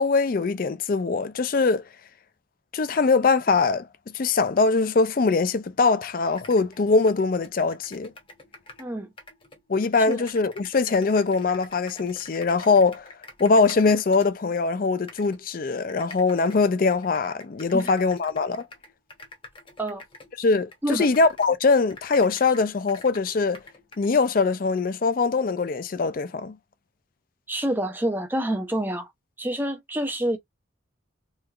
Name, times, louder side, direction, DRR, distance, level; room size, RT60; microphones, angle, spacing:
voice 1, 0.0-1.9 2.7-3.9 4.1-8.1 9.7-13.1 13.4-18.7 20.4-23.6 24.0-26.6, left 4 dB, 45° left, 0.4 m, -22 dB
sound 1, 5.8-5.9 6.2-8.9 9.2-14.6 15.1-15.4 15.9-21.6 21.9-24.1, left 2 dB, 25° left, 0.9 m, -47 dB
voice 2, 8.8-9.1 10.1-10.2 17.7-17.9 19.8-20.0 20.8-21.1 27.5-29.1 29.4-30.4, right 1 dB, 10° right, 0.6 m, -27 dB
3.2 x 3.2 x 2.4 m
head